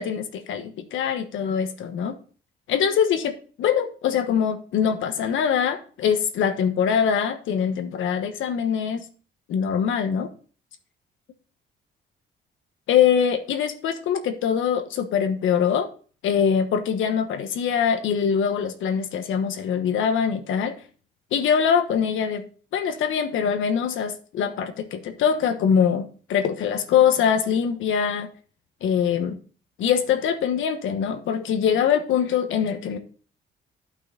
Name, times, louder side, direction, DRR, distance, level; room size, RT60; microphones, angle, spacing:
voice 1, 0.0-2.2 2.7-9.0 9.5-10.3 12.9-15.9 16.2-20.7 21.3-22.4 22.7-28.3 28.8-29.4 29.8-33.0, left 7 dB, 80° left, 8 dB, 1.3 m, -23 dB
12.0 x 5.6 x 4.1 m, 0.40 s
cardioid pair, 90°, 20 cm